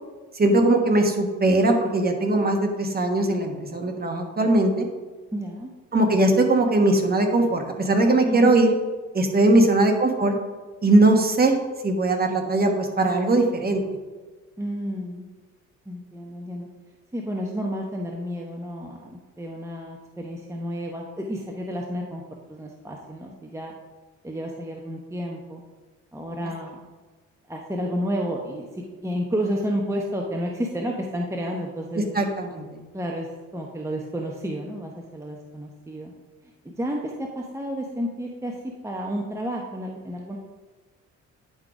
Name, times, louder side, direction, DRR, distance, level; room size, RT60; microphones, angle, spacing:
voice 1, 0.3-4.9 5.9-8.7 9.1-10.4 10.8-11.5 11.8-13.8 32.1-32.8, right 2 dB, 30° right, 3 dB, 1.3 m, -20 dB
voice 2, 5.3-5.7 8.2-8.6 9.5-9.8 14.6-15.3 15.9-16.7 17.1-22.2 22.5-23.7 24.2-25.6 26.1-26.8 27.5-32.0 32.9-36.1 36.8-38.6 38.8-40.4, equal, 10° right, 0 dB, 0.8 m, -31 dB
9.4 x 3.9 x 4.8 m, 1.3 s
cardioid pair, 90°, 30 cm